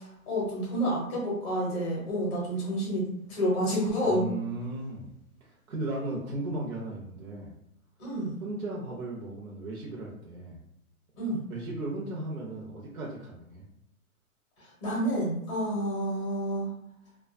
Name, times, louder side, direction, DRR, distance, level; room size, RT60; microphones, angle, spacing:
voice 1, 0.0-4.3 8.0-8.3 11.2-11.4 14.8-16.7, equal, 20° left, -4 dB, 0.7 m, -29 dB
voice 2, 4.0-5.1 5.4-7.5 8.4-10.6 11.5-13.6, right 2 dB, 65° right, -3 dB, 0.7 m, -36 dB
2.4 x 2.3 x 2.4 m, 0.80 s
hypercardioid pair, 170°, 43 cm